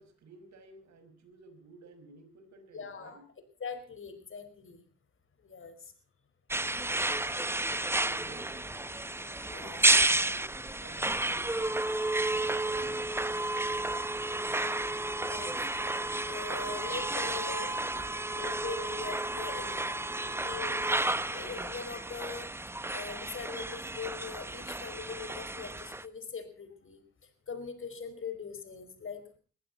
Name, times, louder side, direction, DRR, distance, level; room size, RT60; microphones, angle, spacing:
voice 1, 0.0-3.3 7.7-9.2 9.5-14.5, right 3 dB, 65° right, 8 dB, 5.5 m, -55 dB
voice 2, 2.7-3.2 3.6-4.8 5.4-5.9 9.5-9.9 15.2-15.7 16.2-17.7 18.3-19.8 20.2-22.5 22.9-27.0 27.5-29.2, left 5 dB, 45° left, 10 dB, 4.9 m, -42 dB
sound 1, 6.5-26.1, right 2 dB, 10° right, 0.9 m, -31 dB
21.5 x 15.5 x 4.1 m, 0.39 s
cardioid pair, 90°, 30 cm